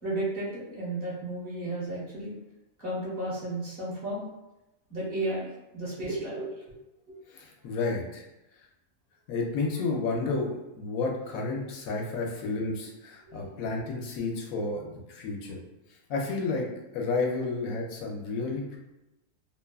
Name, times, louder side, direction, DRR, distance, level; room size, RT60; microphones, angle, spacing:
voice 1, 0.0-2.3 2.8-4.2 4.9-6.5 13.2-13.5, right 1 dB, 45° right, -7 dB, 1.1 m, -33 dB
voice 2, 7.3-8.2 9.3-15.6 16.1-16.7 16.9-18.8, left 3 dB, 80° left, 0 dB, 1.0 m, -31 dB
2.8 x 2.2 x 2.2 m, 0.96 s
omnidirectional pair, 1.4 m